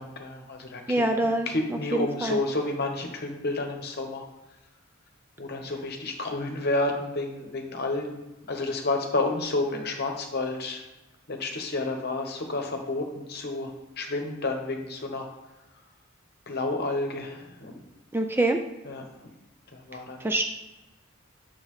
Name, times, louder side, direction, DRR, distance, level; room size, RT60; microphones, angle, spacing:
voice 1, 0.0-4.2 5.4-8.2 8.5-10.8 11.3-15.3 16.5-17.8 18.8-19.1 19.7-20.3, left 2 dB, 50° left, 3 dB, 1.0 m, -30 dB
voice 2, 0.9-1.5 1.9-2.4 18.1-18.6 20.2-20.4, right 2 dB, 10° right, 5 dB, 0.3 m, -25 dB
6.5 x 6.2 x 3.2 m, 1.0 s
head